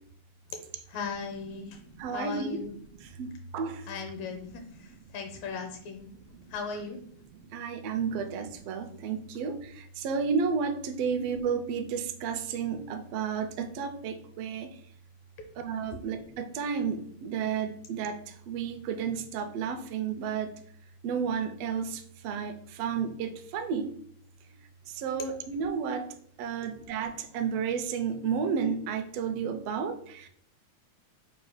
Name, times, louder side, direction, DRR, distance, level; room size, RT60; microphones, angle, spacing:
voice 1, 0.9-1.8 2.1-2.7 3.9-6.1 6.5-7.0, left 5 dB, 75° left, 4 dB, 2.0 m, -37 dB
voice 2, 1.5-2.6 3.0-3.9 4.2-4.8 6.1-6.4 7.3-14.8 15.6-20.5 21.0-23.9 24.9-26.0 26.4-30.3, right 6 dB, 80° right, 7 dB, 1.4 m, -32 dB
4.8 x 2.2 x 4.8 m, 0.63 s
omnidirectional pair, 3.3 m